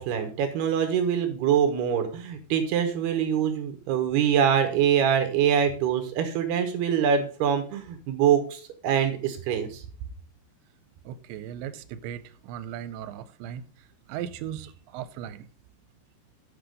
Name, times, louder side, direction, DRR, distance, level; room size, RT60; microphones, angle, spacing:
voice 1, 0.0-9.8, right 8 dB, 75° right, 2.9 m, -24 dB
voice 2, 11.1-13.6 14.1-15.5, right 10 dB, 90° right, 2.9 m, -37 dB
7.9 x 6.2 x 5.1 m
omnidirectional pair, 5.1 m